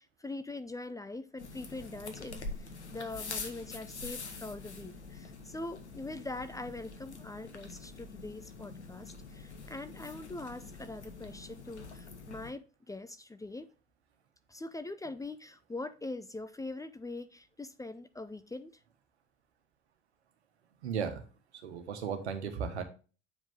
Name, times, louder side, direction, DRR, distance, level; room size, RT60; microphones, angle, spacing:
voice 1, 0.0-13.7 14.5-18.8, left 2 dB, 10° left, 11 dB, 0.6 m, -43 dB
sound 1, 1.4-12.5, left 4 dB, 85° left, 1.0 m, -45 dB
voice 2, 20.8-21.3 21.6-22.8, right 6 dB, 75° right, 7 dB, 1.3 m, -35 dB
8.4 x 5.0 x 3.6 m, 0.35 s
figure-of-eight pair, 60°, 33 cm